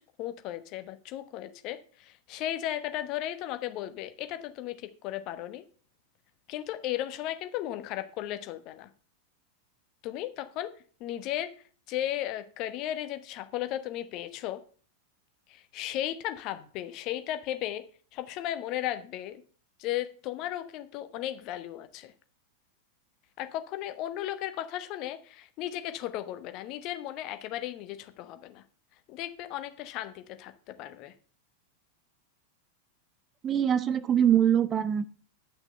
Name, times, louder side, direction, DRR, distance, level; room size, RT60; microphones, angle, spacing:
voice 1, 0.2-5.6 6.5-8.9 10.0-10.7 11.0-14.6 15.5-17.8 18.1-19.4 19.8-22.1 23.4-28.6 29.1-31.1, left 13 dB, 40° left, 10 dB, 1.1 m, -35 dB
voice 2, 33.4-35.2, right 9 dB, 25° right, 14 dB, 0.6 m, -24 dB
10.0 x 6.1 x 6.5 m, 0.42 s
figure-of-eight pair, 90°, 0 cm